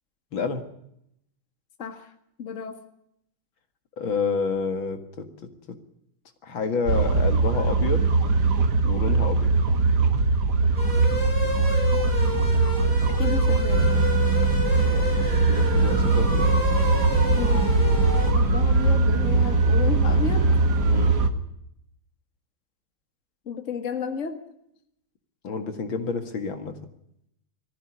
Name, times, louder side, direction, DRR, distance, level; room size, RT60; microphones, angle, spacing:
voice 1, 0.3-0.6 4.0-5.8 6.4-8.1 8.8-9.5 14.8-16.5 20.9-21.1 25.4-26.8, left 5 dB, 70° left, 8 dB, 2.7 m, -29 dB
voice 2, 1.8-2.1 2.4-2.8 12.8-13.9 17.3-17.6 18.3-20.5 23.5-24.4, left 6 dB, 35° left, 7 dB, 2.0 m, -32 dB
sound 1, 6.9-21.3, right 3 dB, 55° right, 2.1 m, -21 dB
sound 2, 10.8-18.3, left 2 dB, 20° left, 6.6 m, -31 dB
20.0 x 15.0 x 9.8 m, 0.77 s
omnidirectional pair, 2.3 m